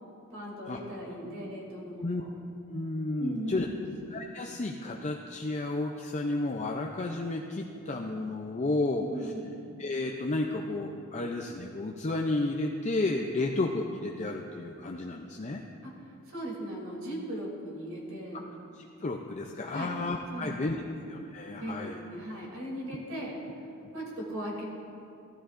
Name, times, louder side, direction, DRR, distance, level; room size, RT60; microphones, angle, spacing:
voice 1, 0.3-2.3 3.2-3.9 8.9-9.5 15.8-15.9 16.3-18.4 19.7-19.9 20.3-20.9 21.6-23.4 23.9-24.6, right 1 dB, 65° right, -3 dB, 2.9 m, -38 dB
voice 2, 2.7-3.7 4.1-9.3 9.8-15.6 18.7-20.8 21.1-22.0, left 2 dB, 30° left, 2 dB, 0.5 m, -32 dB
15.0 x 13.0 x 2.5 m, 2.6 s
head